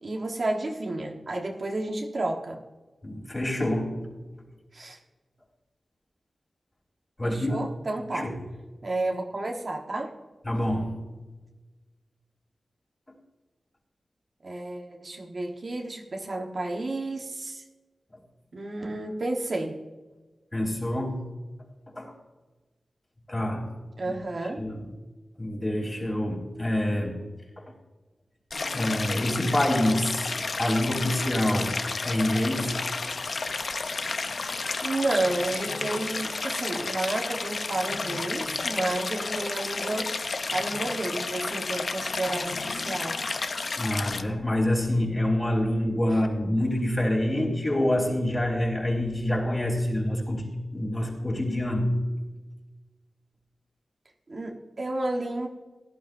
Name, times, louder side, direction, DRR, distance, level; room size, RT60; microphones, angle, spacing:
voice 1, 0.0-2.6 4.7-5.0 7.2-8.3 8.8-10.1 14.4-17.6 18.5-19.7 24.0-24.6 34.8-43.2 54.3-55.5, right 2 dB, 50° right, 1 dB, 1.3 m, -31 dB
voice 2, 3.0-4.1 7.2-7.6 8.1-8.3 10.5-10.9 20.5-21.2 21.9-22.1 23.3-23.6 24.0-24.1 24.6-24.9 25.4-27.2 28.7-32.8 43.8-52.0, left 1 dB, 25° left, -1 dB, 3.9 m, -26 dB
Stream, 28.5-44.2, left 4 dB, 60° left, 0.7 m, -31 dB
17.5 x 11.5 x 2.6 m, 1.2 s
wide cardioid pair, 95°, 0 cm